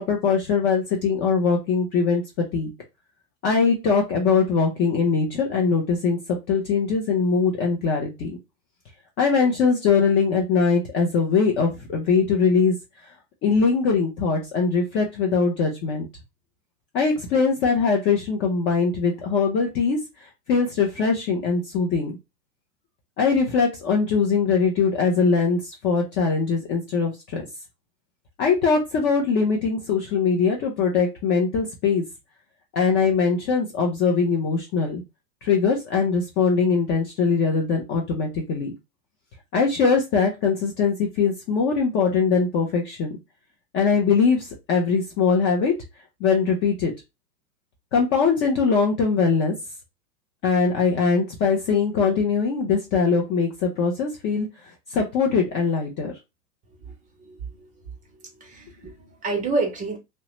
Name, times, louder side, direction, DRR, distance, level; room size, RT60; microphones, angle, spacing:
voice 1, 0.0-2.7 3.4-8.4 9.2-12.8 13.4-16.1 16.9-22.2 23.2-27.4 28.4-32.0 32.7-35.0 35.4-38.7 39.5-43.2 43.7-45.7 46.2-46.9 47.9-49.5 50.4-54.5 54.9-56.1, left 5 dB, 25° left, 0.5 m, -22 dB
voice 2, 56.8-57.7 58.1-60.0, right 3 dB, 15° right, 0.7 m, -30 dB
2.7 x 2.1 x 2.9 m
hypercardioid pair, 105°, 49 cm